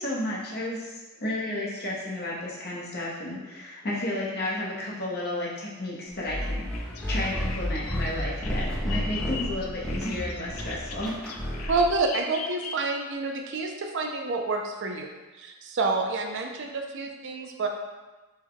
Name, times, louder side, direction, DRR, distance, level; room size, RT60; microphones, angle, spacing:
voice 1, 0.0-11.2 11.5-11.7, left 1 dB, 45° left, -5 dB, 0.9 m, -32 dB
sound 1, 6.2-12.0, equal, 5° left, 0.6 m, -31 dB
Bird vocalization bird call bird song, 6.6-13.1, left 5 dB, 85° left, 0.4 m, -40 dB
voice 2, 11.7-15.1 15.4-17.7, right 3 dB, 55° right, 3 dB, 0.5 m, -28 dB
4.4 x 2.2 x 3.7 m, 1.2 s
head